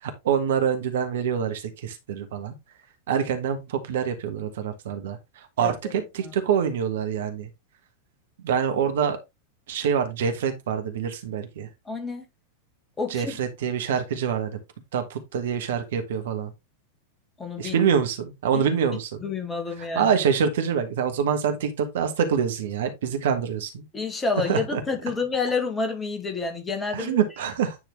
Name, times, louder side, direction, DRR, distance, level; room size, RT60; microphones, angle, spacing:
voice 1, 0.0-2.5 3.1-5.2 5.6-7.5 8.4-9.2 9.7-11.7 13.1-14.6 14.9-16.5 17.6-19.2 19.9-23.8 24.5-24.8 26.9-27.8, right 7 dB, 60° right, 1.4 m, -25 dB
voice 2, 11.9-12.2 13.0-13.3 17.4-17.9 18.5-18.7 19.2-20.1 23.9-27.2, left 4 dB, 15° left, 1.9 m, -29 dB
9.7 x 4.1 x 3.3 m
figure-of-eight pair, 90°, 0 cm